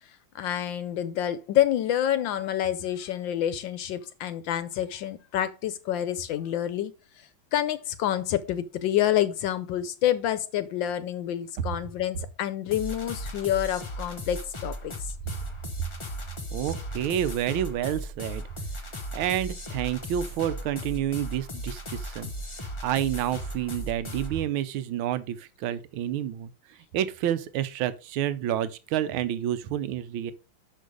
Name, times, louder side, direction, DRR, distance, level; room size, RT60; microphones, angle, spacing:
voice 1, 0.3-15.1, left 11 dB, 75° left, 1.2 m, -28 dB
sound 1, 12.7-24.4, equal, 35° left, 0.5 m, -37 dB
voice 2, 16.5-18.4 19.1-22.3 22.8-26.5 26.9-30.3, right 11 dB, 75° right, 1.5 m, -29 dB
6.5 x 5.5 x 4.9 m
omnidirectional pair, 2.3 m